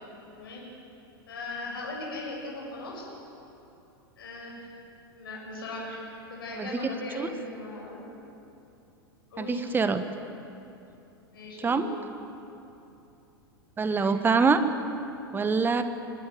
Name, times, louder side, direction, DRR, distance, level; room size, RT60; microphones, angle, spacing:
voice 1, 0.3-0.7 1.3-3.1 4.2-4.7 5.2-6.0 6.3-8.0 9.3-9.6 11.3-11.9 13.9-14.2, left 2 dB, 65° left, -3 dB, 7.3 m, -38 dB
voice 2, 9.4-10.0 11.6-11.8 13.8-14.6 15.3-15.8, right 4 dB, 15° right, 10 dB, 1.3 m, -24 dB
25.0 x 19.0 x 7.8 m, 2.8 s
figure-of-eight pair, 90°, 13 cm